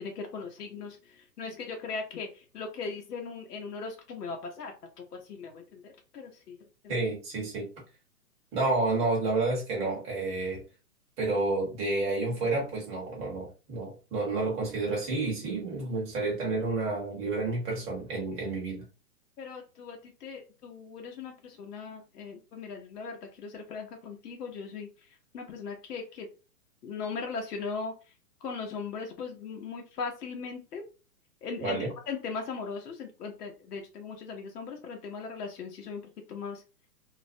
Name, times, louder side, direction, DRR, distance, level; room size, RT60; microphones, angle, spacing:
voice 1, 0.0-6.6 6.8-7.0 19.4-25.1 25.3-26.3 26.8-27.9 28.4-30.8 31.4-36.0 36.3-36.6, left 5 dB, 75° left, 0.8 m, -39 dB
voice 2, 6.9-7.7 8.5-10.6 11.2-18.8 31.6-31.9, right 3 dB, 15° right, 0.7 m, -30 dB
2.4 x 2.0 x 2.5 m
hypercardioid pair, 140°, 47 cm